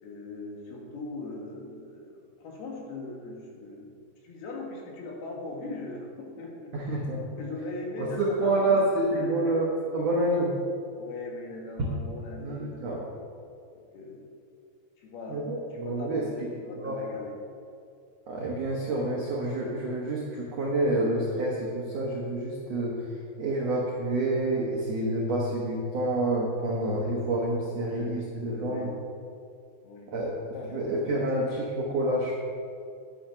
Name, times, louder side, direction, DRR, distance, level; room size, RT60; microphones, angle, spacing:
voice 1, 0.0-3.9 4.2-7.0 7.4-8.8 9.1-9.6 11.0-13.0 13.9-14.2 15.0-17.3 27.0-27.2 27.5-28.2 28.5-28.9 29.8-30.1 30.5-31.3, left 2 dB, 70° left, -1 dB, 3.5 m, -40 dB
voice 2, 6.7-7.4 8.0-10.5 12.4-13.1 15.3-16.2 16.7-17.0 18.3-22.9 23.4-28.9 30.1-32.3, right 1 dB, 70° right, -3 dB, 1.5 m, -28 dB
10.5 x 8.6 x 5.7 m, 2.4 s
omnidirectional pair, 4.8 m